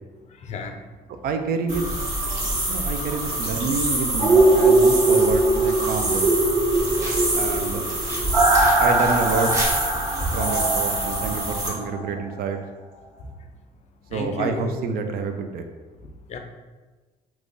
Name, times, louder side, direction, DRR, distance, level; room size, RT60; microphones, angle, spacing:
voice 1, 0.3-0.9 13.4-13.5 14.1-14.7 16.3-16.4, left 3 dB, 40° left, 5 dB, 0.4 m, -33 dB
voice 2, 1.2-1.9 2.7-6.3 7.3-7.8 8.8-9.5 10.3-12.6 14.1-15.6, right 4 dB, 60° right, 6 dB, 0.4 m, -27 dB
sound 1, 1.7-11.7, right 1 dB, 40° right, 1.3 m, -27 dB
sound 2, 4.2-12.1 12.4-12.5, right 2 dB, 80° right, 1.4 m, -21 dB
sound 3, 6.7-11.7, equal, 20° right, 1.2 m, -36 dB
3.6 x 3.0 x 2.6 m, 1.3 s
cardioid pair, 110°, 17 cm